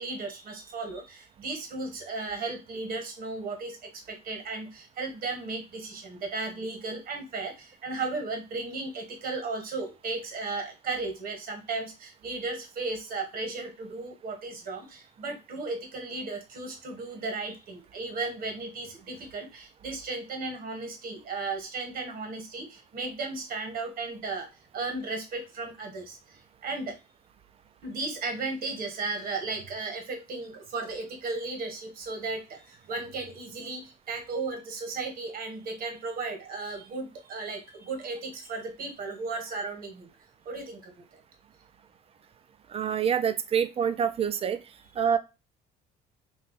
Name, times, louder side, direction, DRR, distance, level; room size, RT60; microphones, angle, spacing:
voice 1, 0.0-24.5 24.7-26.9 27.8-40.1 40.4-41.1, right 3 dB, 60° right, 5 dB, 1.2 m, -35 dB
voice 2, 42.7-44.6 45.0-45.2, right 8 dB, 35° right, 11 dB, 0.4 m, -26 dB
2.7 x 2.3 x 3.9 m, 0.26 s
cardioid pair, 110°, 17 cm